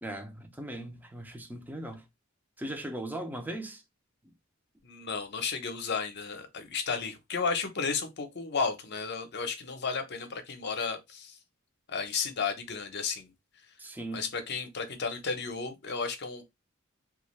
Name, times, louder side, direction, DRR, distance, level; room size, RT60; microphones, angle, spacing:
voice 1, 0.0-2.0 2.6-3.8 13.8-14.3, right 1 dB, 10° right, 0.6 m, -38 dB
voice 2, 4.8-11.3 11.9-13.3 14.1-16.4, left 5 dB, 55° left, 0.8 m, -33 dB
3.3 x 2.4 x 3.1 m
head